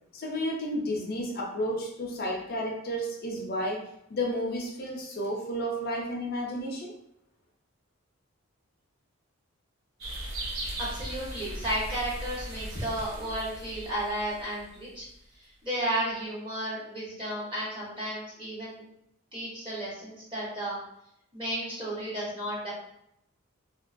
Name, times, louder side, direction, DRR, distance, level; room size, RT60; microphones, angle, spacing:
voice 1, 0.1-3.8 4.1-6.9, equal, 45° left, -1 dB, 0.5 m, -32 dB
sound 1, 10.0-15.0, right 1 dB, 80° right, 0.8 m, -38 dB
voice 2, 10.8-15.0 15.6-18.8 19.3-20.8 21.3-22.7, right 1 dB, 25° right, -7 dB, 1.2 m, -33 dB
2.9 x 2.8 x 2.5 m, 0.78 s
head